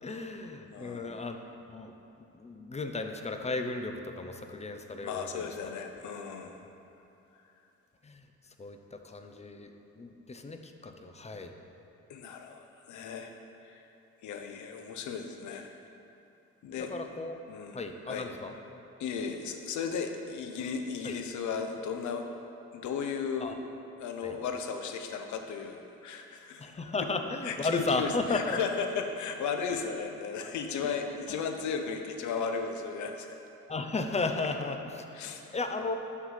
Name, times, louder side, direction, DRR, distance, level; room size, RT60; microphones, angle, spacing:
voice 1, 0.0-1.4 1.7-1.9 2.3-5.5 8.0-8.2 8.6-9.7 10.0-11.5 16.8-17.4 17.7-18.5 21.0-21.1 23.4-23.6 24.2-24.4 26.6-28.6 30.8-31.0 33.7-36.0, left 3 dB, 20° left, 6 dB, 0.6 m, -34 dB
voice 2, 0.7-1.1 5.0-6.6 12.1-13.3 13.6-13.8 14.2-15.8 16.6-16.9 17.5-17.8 18.1-18.3 19.0-22.3 22.7-23.6 24.0-26.7 27.0-27.1 27.4-33.4 35.1-35.4, left 6 dB, 70° left, 5 dB, 0.8 m, -35 dB
5.9 x 5.7 x 5.6 m, 2.9 s
cardioid pair, 90°, 30 cm